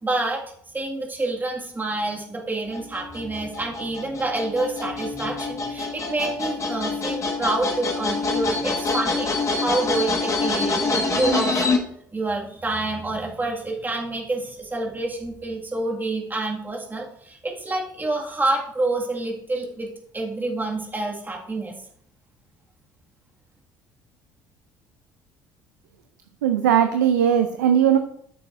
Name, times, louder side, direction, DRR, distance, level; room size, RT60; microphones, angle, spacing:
voice 1, 0.0-0.4 0.7-11.5 12.1-19.9 20.1-21.8, right 2 dB, 20° right, -1 dB, 2.1 m, -27 dB
sound 1, 2.7-11.8, left 3 dB, 35° left, 1.9 m, -26 dB
voice 2, 26.4-28.0, right 9 dB, 85° right, 8 dB, 0.5 m, -18 dB
13.5 x 6.8 x 2.7 m, 0.67 s
hypercardioid pair, 55°, 10 cm